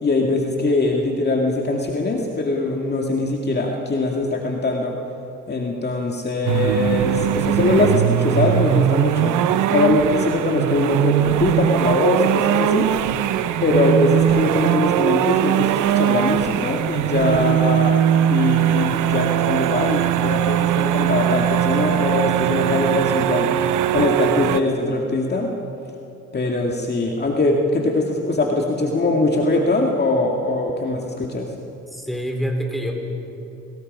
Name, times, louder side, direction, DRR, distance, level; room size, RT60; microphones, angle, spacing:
voice 1, 0.0-4.9 5.5-9.4 9.7-12.9 13.6-18.0 18.3-23.5 23.9-25.5 26.3-31.5, left 2 dB, 35° left, 0 dB, 2.1 m, -22 dB
sound 1, 6.5-24.6, right 11 dB, 85° right, 0.8 m, -20 dB
voice 2, 31.9-32.9, equal, ahead, 1 dB, 4.1 m, -26 dB
28.0 x 19.0 x 5.4 m, 2.8 s
cardioid pair, 90°, 30 cm